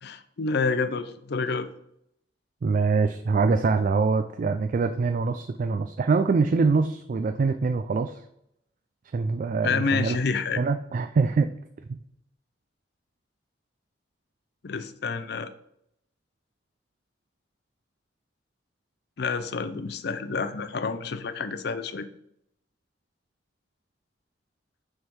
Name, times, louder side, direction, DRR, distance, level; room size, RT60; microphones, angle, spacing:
voice 1, 0.0-1.7 9.6-10.6 14.6-15.5 19.2-22.1, left 4 dB, 65° left, 11 dB, 0.5 m, -28 dB
voice 2, 2.6-8.2 9.1-10.2 10.6-11.5 11.9-12.0, right 4 dB, 50° right, 7 dB, 0.3 m, -24 dB
6.4 x 3.7 x 4.5 m, 0.76 s
head